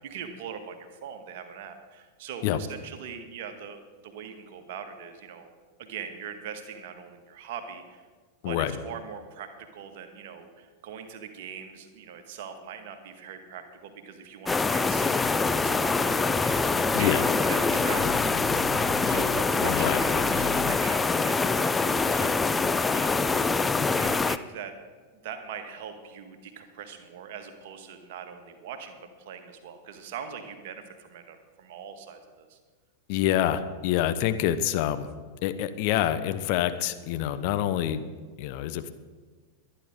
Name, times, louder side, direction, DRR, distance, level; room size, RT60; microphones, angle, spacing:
voice 1, 0.0-5.5 5.8-8.0 8.4-18.2 19.0-23.3 23.9-24.7 25.2-32.6, right 7 dB, 50° right, 6 dB, 1.7 m, -41 dB
sound 1, 14.5-24.4, left 4 dB, 10° left, 0.5 m, -24 dB
sound 2, 15.4-20.7, left 6 dB, 70° left, 4.4 m, -42 dB
voice 2, 16.9-17.3 17.7-17.8 19.1-19.2 19.6-20.0 33.1-35.1 35.4-38.0 38.4-38.9, left 11 dB, 45° left, 11 dB, 0.8 m, -27 dB
22.5 x 10.0 x 3.7 m, 1.5 s
figure-of-eight pair, 90°, 0 cm